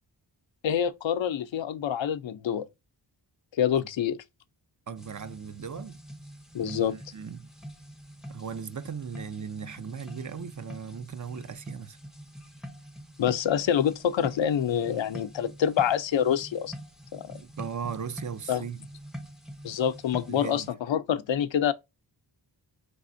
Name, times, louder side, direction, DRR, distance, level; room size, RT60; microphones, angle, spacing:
voice 1, 0.6-2.7 3.6-4.2 6.5-6.9 13.2-16.7 17.1-17.4 18.5-18.6 19.6-21.7, left 9 dB, 85° left, 0.6 m, -26 dB
voice 2, 4.9-6.0 6.6-7.5 8.3-12.0 17.4-18.8 19.7-19.8 20.3-20.7, right 6 dB, 45° right, 0.5 m, -37 dB
sound 1, 5.0-20.7, equal, ahead, 0.5 m, -45 dB
4.1 x 3.5 x 2.6 m
wide cardioid pair, 100°, 44 cm